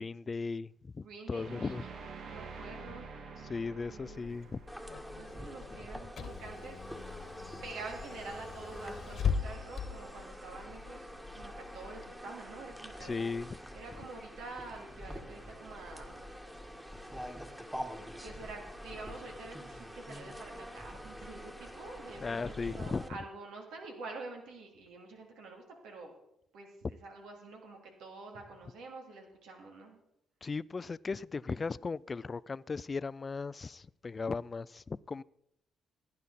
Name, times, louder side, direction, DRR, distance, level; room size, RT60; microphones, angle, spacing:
voice 1, 0.0-1.8 3.4-4.6 13.0-13.5 22.2-23.0 30.4-35.2, left 4 dB, 30° left, 0.4 m, -37 dB
voice 2, 1.0-1.9 2.3-3.1 3.9-4.3 5.2-6.8 7.6-13.3 13.7-16.3 16.8-17.4 18.2-26.1 26.5-30.0, right 3 dB, 90° right, 2.9 m, -47 dB
sound 1, 1.3-6.4, right 4 dB, 65° right, 1.8 m, -48 dB
Car / Engine, 3.8-12.1, left 6 dB, 55° left, 1.3 m, -40 dB
sound 2, 4.7-23.1, equal, 10° right, 1.7 m, -46 dB
17.5 x 9.7 x 4.2 m
cardioid pair, 90°, 0 cm